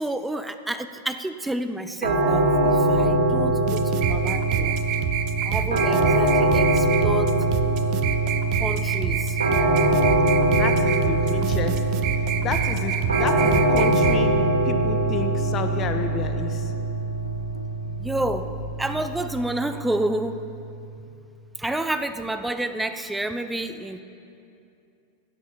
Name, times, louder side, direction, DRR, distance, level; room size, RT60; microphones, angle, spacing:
voice 1, 0.0-4.8 5.4-7.4 8.6-9.4 18.0-18.5 18.8-20.5 21.6-24.0, right 1 dB, 5° right, 10 dB, 0.6 m, -29 dB
sound 1, 2.0-20.9, right 2 dB, 70° right, 3.2 m, -23 dB
sound 2, 3.6-14.2, right 8 dB, 40° right, 0.8 m, -27 dB
sound 3, 10.3-19.2, left 4 dB, 80° left, 1.0 m, -39 dB
voice 2, 10.5-11.8 12.4-14.4 14.6-16.7, left 6 dB, 30° left, 7 dB, 1.1 m, -30 dB
16.0 x 9.2 x 6.8 m, 2.7 s
figure-of-eight pair, 90°, 0 cm